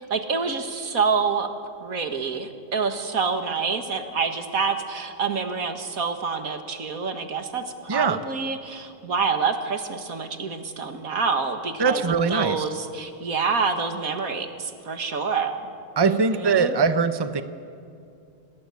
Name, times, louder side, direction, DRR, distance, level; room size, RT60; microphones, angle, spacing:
voice 1, 0.1-1.5 1.8-15.6 16.1-16.8, right 5 dB, 90° right, 7 dB, 2.2 m, -27 dB
voice 2, 11.8-12.6 16.0-17.4, right 5 dB, 20° right, 10 dB, 0.8 m, -22 dB
28.5 x 19.0 x 8.5 m, 2.5 s
omnidirectional pair, 1.4 m